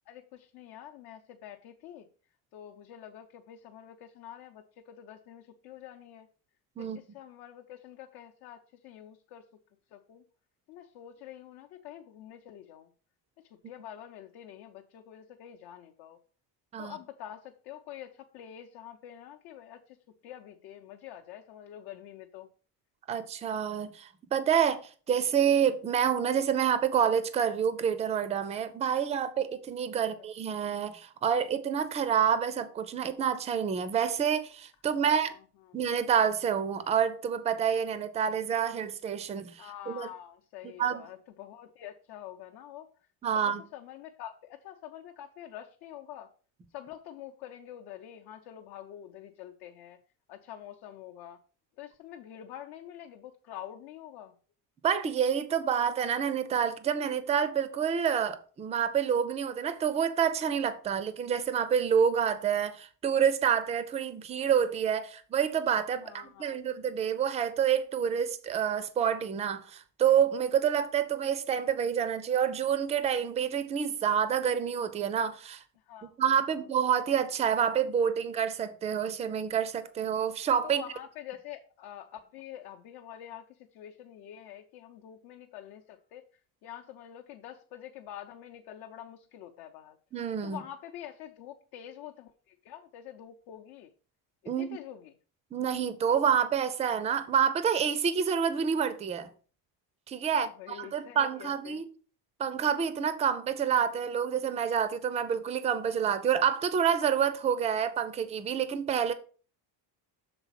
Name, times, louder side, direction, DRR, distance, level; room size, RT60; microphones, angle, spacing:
voice 1, 0.1-2.0 2.5-6.3 6.8-9.5 9.9-10.2 10.7-12.9 13.7-16.2 16.8-20.0 20.2-22.5 30.1-30.3 35.0-35.4 35.7-35.8 39.6-42.9 43.3-43.4 43.7-46.3 46.7-50.0 50.3-51.4 51.8-54.3 66.0-66.6 75.9-76.6 80.6-86.2 86.6-90.0 90.4-93.9 94.4-95.1 100.3-101.8, left 11 dB, 70° left, 0.8 m, -46 dB
voice 2, 23.1-35.3 35.7-40.1 40.6-41.1 43.2-43.6 54.8-75.6 76.0-80.8 90.1-90.6 94.5-94.8 95.5-99.3 100.1-101.8 102.4-109.1, right 8 dB, 15° right, 0.3 m, -28 dB
6.9 x 4.0 x 5.7 m
cardioid pair, 180°, 40 cm